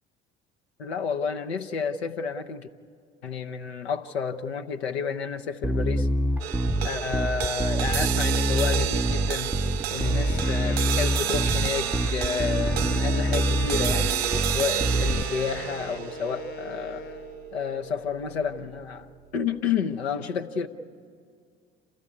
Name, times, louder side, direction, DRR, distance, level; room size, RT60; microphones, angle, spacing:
voice 1, 0.8-2.7 3.2-6.1 6.8-9.6 9.9-17.0 17.5-19.1 19.3-20.7, left 6 dB, 80° left, 0.7 m, -30 dB
Bass guitar, 5.6-15.2, right 1 dB, 5° right, 0.5 m, -26 dB
sound 1, 6.4-18.9, right 12 dB, 80° right, 0.5 m, -31 dB
Wind instrument woodwind instrument, 10.0-17.6, left 10 dB, 40° left, 0.6 m, -40 dB
27.5 x 14.0 x 8.6 m
figure-of-eight pair, 55°, 31 cm